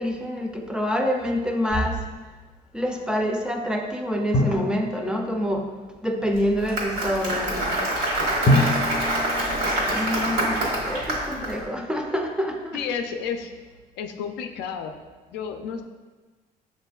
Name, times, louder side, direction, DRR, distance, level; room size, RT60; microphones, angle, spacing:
voice 1, 0.0-2.0 2.7-5.7 6.0-7.8 9.6-12.8, equal, 5° right, 2 dB, 0.4 m, -27 dB
Drum, 4.3-5.8 8.5-10.6, left 1 dB, 45° left, 0.6 m, -25 dB
Applause, 6.4-11.5, right 1 dB, 85° right, 1.3 m, -25 dB
voice 2, 12.7-13.5 14.0-14.9 15.3-15.8, left 7 dB, 90° left, 5 dB, 0.4 m, -31 dB
6.6 x 2.5 x 2.3 m, 1.3 s
cardioid pair, 110°, 17 cm